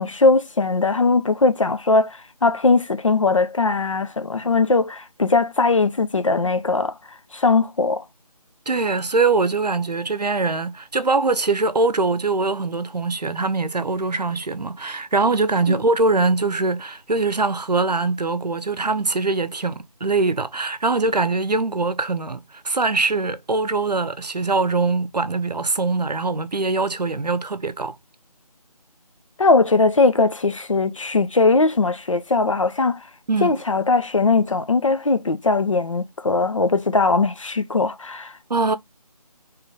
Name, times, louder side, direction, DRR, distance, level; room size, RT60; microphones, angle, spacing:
voice 1, 0.0-6.9 7.3-8.0 15.7-15.8 29.4-33.1 33.4-38.3, left 3 dB, 55° left, 0.6 m, -20 dB
voice 2, 8.7-27.9 33.3-33.6 38.5-38.8, right 3 dB, 90° right, 0.6 m, -22 dB
3.6 x 3.2 x 3.0 m
figure-of-eight pair, 160°, 20 cm